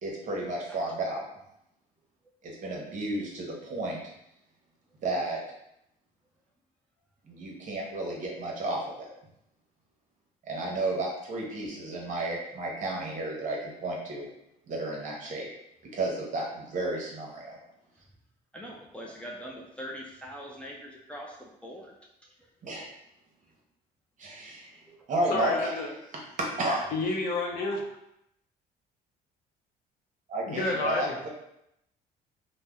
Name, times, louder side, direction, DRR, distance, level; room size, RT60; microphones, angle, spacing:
voice 1, 0.0-1.2 2.4-4.0 5.0-5.4 7.3-9.1 10.5-14.3 14.7-15.5 15.9-17.6 22.6-22.9 24.2-24.8 25.1-25.7 26.6-26.8 30.3-31.3, right 2 dB, 50° right, -2 dB, 0.9 m, -32 dB
voice 2, 18.5-21.9 24.9-25.0, equal, 5° left, -3 dB, 0.4 m, -42 dB
voice 3, 25.3-25.9 26.9-27.8 30.4-31.1, left 3 dB, 65° left, 2 dB, 0.6 m, -29 dB
2.7 x 2.0 x 3.4 m, 0.81 s
cardioid pair, 110°, 17 cm